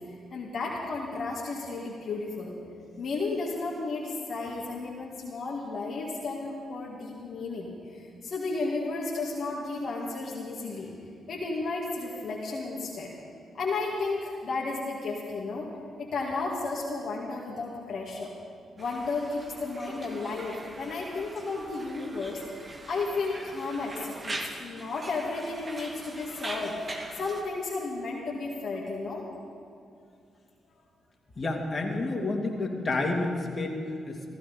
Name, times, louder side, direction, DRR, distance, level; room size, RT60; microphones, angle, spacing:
voice 1, 0.1-2.5 3.0-10.9 11.3-13.1 13.5-15.7 16.0-18.3 18.8-22.4 22.9-29.2, left 3 dB, 60° left, -3 dB, 2.0 m, -33 dB
Conversation, 18.8-27.4, right 1 dB, 35° right, 2.4 m, -42 dB
voice 2, 31.4-34.3, left 2 dB, 40° left, 1 dB, 2.7 m, -30 dB
15.5 x 14.5 x 5.4 m, 2.5 s
hypercardioid pair, 45°, 0 cm